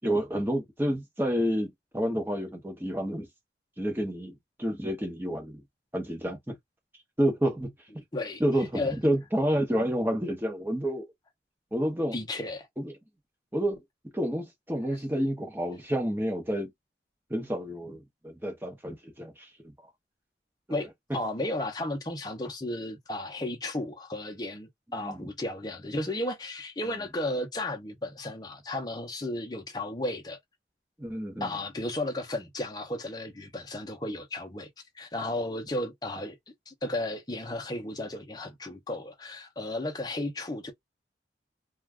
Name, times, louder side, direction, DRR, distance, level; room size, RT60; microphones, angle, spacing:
voice 1, 0.0-3.3 3.8-5.6 5.9-6.5 7.2-8.0 8.4-11.1 11.7-12.2 12.8-12.9 13.5-13.8 14.1-16.7 17.3-19.9 20.7-20.8 24.9-25.2 31.0-31.6, equal, 10° right, 0.9 m, -29 dB
voice 2, 12.1-12.7 20.7-30.4 31.4-34.7 34.9-36.4 36.7-40.7, left 1 dB, 20° left, 0.7 m, -34 dB
2.5 x 2.3 x 3.4 m
head